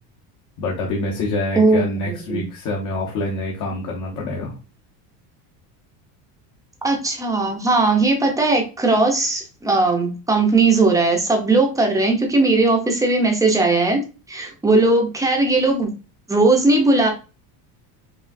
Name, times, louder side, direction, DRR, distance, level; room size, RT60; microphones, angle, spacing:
voice 1, 0.6-4.6, left 2 dB, 45° left, -1 dB, 1.1 m, -26 dB
voice 2, 2.1-2.4 6.8-15.9 16.3-17.1, right 3 dB, 10° right, 2 dB, 0.7 m, -18 dB
5.2 x 3.1 x 2.6 m, 0.33 s
cardioid pair, 160°, 43 cm